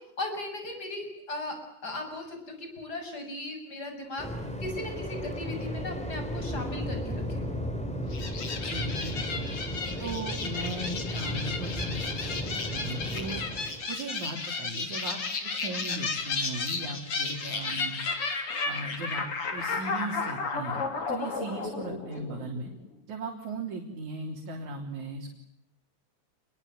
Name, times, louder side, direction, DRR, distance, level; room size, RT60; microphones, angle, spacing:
voice 1, 0.0-1.6 1.8-4.3 4.6-7.4, left 2 dB, 30° left, 5 dB, 7.0 m, -37 dB
Waves surf, 4.2-13.9, equal, ahead, 4.6 m, -35 dB
sound 1, 8.1-22.8, left 4 dB, 50° left, 4.0 m, -33 dB
voice 2, 8.6-9.5 10.0-13.4 13.9-18.0 18.7-19.3 19.5-22.7 23.1-25.3, right 2 dB, 75° right, 1 dB, 4.8 m, -37 dB
28.5 x 22.5 x 9.3 m, 0.74 s
omnidirectional pair, 3.4 m